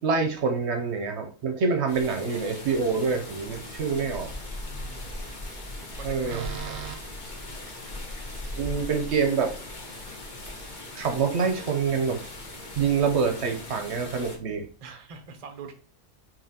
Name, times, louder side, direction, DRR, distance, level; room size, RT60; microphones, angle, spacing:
voice 1, 0.0-4.3 6.0-6.9 8.6-9.5 10.9-12.2 12.7-14.7, right 5 dB, 60° right, 5 dB, 0.8 m, -26 dB
sound 1, 1.9-14.4, left 2 dB, 40° left, 0.9 m, -39 dB
voice 2, 4.7-5.5 5.8-6.8 14.8-15.7, right 5 dB, 40° right, 5 dB, 0.5 m, -44 dB
5.1 x 2.8 x 2.8 m, 0.40 s
omnidirectional pair, 1.4 m